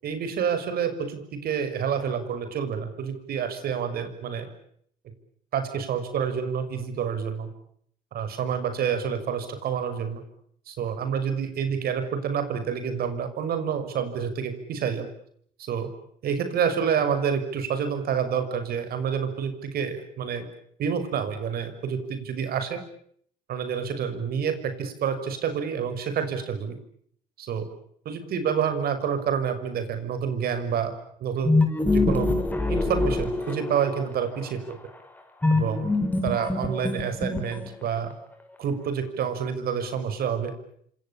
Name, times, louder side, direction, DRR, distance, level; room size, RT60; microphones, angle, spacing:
voice 1, 0.0-4.5 5.5-7.5 8.1-10.2 10.7-15.1 15.6-15.9 16.2-20.5 20.8-22.8 23.5-26.8 27.4-27.7 28.0-30.9 31.2-31.6 31.9-32.3 32.7-34.8 35.5-35.9 36.2-38.1 38.6-40.5, right 7 dB, 65° right, 10 dB, 6.0 m, -28 dB
sound 1, 31.4-34.0 35.4-37.9, left 2 dB, 10° left, 4.5 m, -24 dB
29.0 x 26.0 x 7.2 m, 0.65 s
cardioid pair, 110°, 17 cm